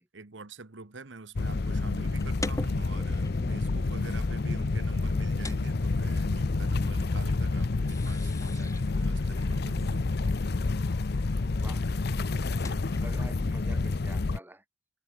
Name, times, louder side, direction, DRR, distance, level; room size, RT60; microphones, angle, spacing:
voice 1, 0.1-10.0, right 3 dB, 75° right, 1.3 m, -46 dB
sound 1, 1.4-14.4, left 3 dB, 55° left, 0.6 m, -29 dB
sound 2, 1.8-13.1, left 1 dB, 15° left, 3.9 m, -44 dB
voice 2, 11.5-11.9 12.3-14.6, right 1 dB, 10° right, 2.9 m, -47 dB
head